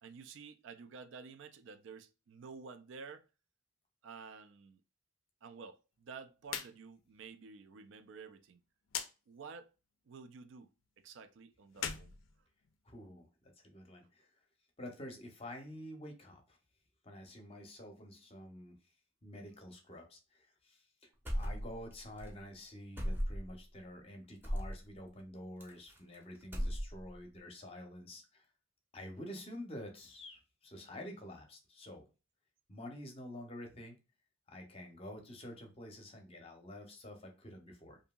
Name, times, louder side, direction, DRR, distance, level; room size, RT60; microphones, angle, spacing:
voice 1, 0.0-3.3 4.0-4.8 5.4-8.6 9.3-9.7 10.1-12.2, right 5 dB, 70° right, 0.3 m, -51 dB
sound 1, 6.4-6.7 7.0-7.1 8.9-9.1 11.7-13.0, left 8 dB, 85° left, 0.4 m, -40 dB
voice 2, 12.8-14.3 14.8-16.6 17.0-18.8 19.2-28.4 28.9-32.0 32.7-34.0 34.5-38.0, left 1 dB, 30° left, 0.7 m, -49 dB
sound 2, 21.2-21.9 22.2-22.3 23.0-23.6 24.4-24.8 25.6-26.1 26.4-27.2, equal, 10° right, 0.6 m, -36 dB
2.7 x 2.6 x 2.2 m
head